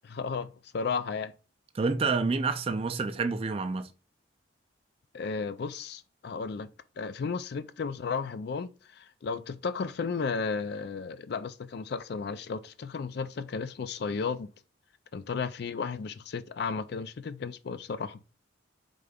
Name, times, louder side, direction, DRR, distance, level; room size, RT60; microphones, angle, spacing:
voice 1, 0.0-1.3 5.1-6.7 7.0-14.5 15.1-18.2, left 5 dB, 55° left, 0.4 m, -34 dB
voice 2, 1.7-3.9, right 4 dB, 30° right, 0.4 m, -28 dB
4.9 x 3.7 x 2.3 m
head